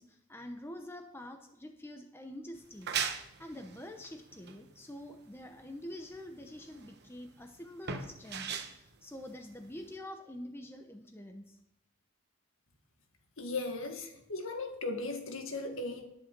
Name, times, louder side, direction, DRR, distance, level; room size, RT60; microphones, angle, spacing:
voice 1, 0.0-8.5 8.7-11.6, left 1 dB, 10° left, 5 dB, 0.8 m, -46 dB
sound 1, 2.5-10.0, right 7 dB, 45° right, 1.1 m, -40 dB
voice 2, 13.4-16.0, left 3 dB, 60° left, 4 dB, 1.8 m, -37 dB
11.0 x 10.0 x 6.0 m, 0.80 s
head